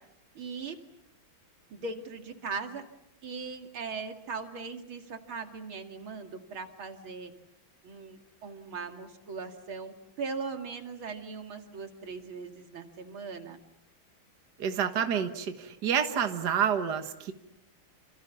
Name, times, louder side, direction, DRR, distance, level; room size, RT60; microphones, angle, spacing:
voice 1, 0.3-0.8 1.7-2.8 3.2-7.3 7.8-13.6, right 4 dB, 85° right, 5 dB, 3.2 m, -39 dB
voice 2, 14.6-17.3, right 8 dB, 55° right, 7 dB, 2.0 m, -28 dB
28.5 x 27.5 x 7.2 m, 0.82 s
omnidirectional pair, 2.2 m